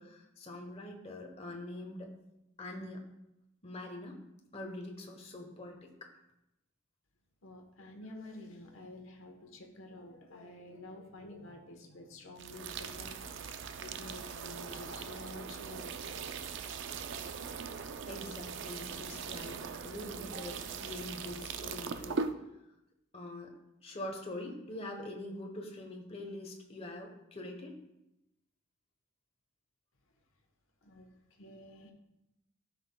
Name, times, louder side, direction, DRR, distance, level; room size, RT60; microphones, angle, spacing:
voice 1, 0.0-2.1 2.6-3.1 3.6-4.2 4.5-6.1 18.1-22.2 23.1-23.5 23.8-27.8, left 1 dB, 30° left, 3 dB, 1.0 m, -44 dB
voice 2, 7.4-16.6 30.8-31.9, left 1 dB, 80° left, 3 dB, 1.1 m, -50 dB
sound 1, 12.4-22.3, right 5 dB, 60° right, 0.4 m, -40 dB
12.5 x 5.6 x 2.3 m, 0.88 s
head